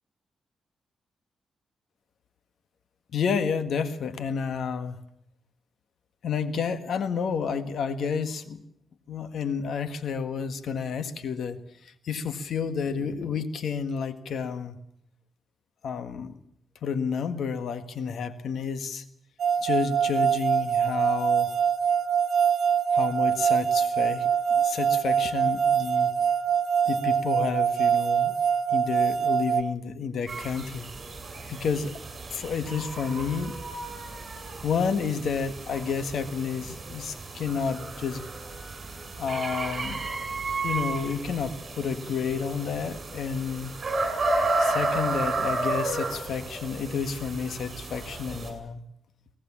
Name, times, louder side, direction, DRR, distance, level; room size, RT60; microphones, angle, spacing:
voice 1, 3.1-5.0 6.2-8.6 9.1-14.8 15.8-16.4 16.8-19.0 19.6-21.5 22.9-24.3 24.6-26.1 26.9-28.3 28.7-30.9 31.5-31.9 32.3-33.6 34.6-38.2 39.2-40.1 40.6-43.7 44.6-48.8, left 6 dB, 75° left, 10 dB, 1.7 m, -30 dB
sound 1, 19.4-29.6, right 8 dB, 75° right, 1.0 m, -24 dB
sound 2, 30.3-48.5, right 2 dB, 35° right, 7.5 m, -32 dB
24.0 x 17.5 x 7.4 m, 0.74 s
cardioid pair, 95°, 0 cm